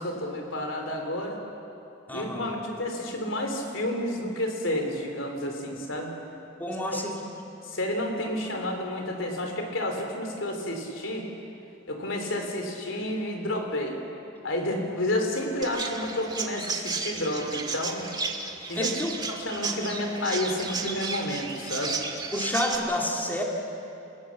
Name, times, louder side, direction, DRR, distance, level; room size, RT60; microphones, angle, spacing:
voice 1, 0.0-1.4 2.1-6.1 6.9-7.0 7.6-11.3 11.9-14.0 14.4-18.1 18.7-18.9 19.4-22.0, left 1 dB, 85° left, 3 dB, 3.4 m, -30 dB
voice 2, 2.1-2.5 6.6-7.2 18.8-19.2 22.3-23.4, left 1 dB, 10° left, -1 dB, 2.4 m, -29 dB
Chirp tweet, 15.6-22.8, right 4 dB, 25° right, 1.8 m, -33 dB
29.5 x 17.0 x 7.3 m, 2.7 s
head